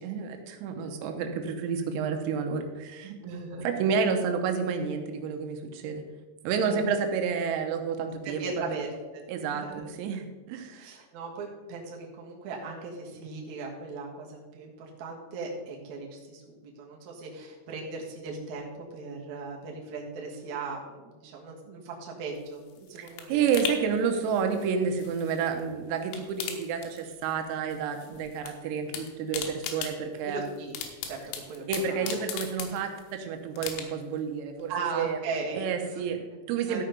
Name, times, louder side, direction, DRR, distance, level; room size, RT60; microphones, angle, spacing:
voice 1, 0.0-3.2 3.6-6.0 6.4-8.8 9.3-10.9 23.0-30.5 31.7-35.2 35.6-36.8, right 6 dB, 90° right, 5 dB, 3.8 m, -30 dB
voice 2, 3.2-3.7 6.6-6.8 8.2-9.2 9.5-9.9 10.7-23.4 30.2-30.7 31.1-31.2 31.5-32.2 34.7-36.1 36.6-36.8, right 4 dB, 65° right, -2 dB, 1.9 m, -38 dB
sound 1, 22.4-25.6 25.9-27.5 27.7-28.5 28.8-33.1 33.6-34.2 34.6-34.7, left 8 dB, 75° left, 3.3 m, -39 dB
13.5 x 5.8 x 5.2 m, 1.3 s
omnidirectional pair, 6.0 m